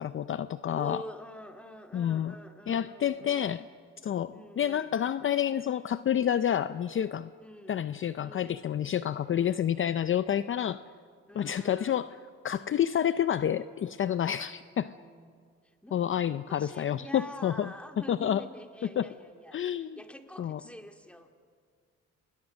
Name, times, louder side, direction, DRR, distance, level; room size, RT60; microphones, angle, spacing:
voice 1, 0.0-1.0 1.9-2.3 2.7-3.6 4.0-7.3 7.7-10.8 11.4-12.1 12.4-14.9 15.9-17.7 18.1-18.4 19.0-19.1 19.5-20.0 20.4-20.6, left 10 dB, 45° left, 13 dB, 0.6 m, -29 dB
voice 2, 0.8-3.5 4.3-4.9 7.4-7.9 8.2-8.6 11.3-12.1 14.5-15.4 15.6-16.0 16.5-21.3, equal, 5° left, 5 dB, 2.2 m, -46 dB
28.0 x 21.0 x 6.4 m, 2.1 s
cardioid pair, 90°, 30 cm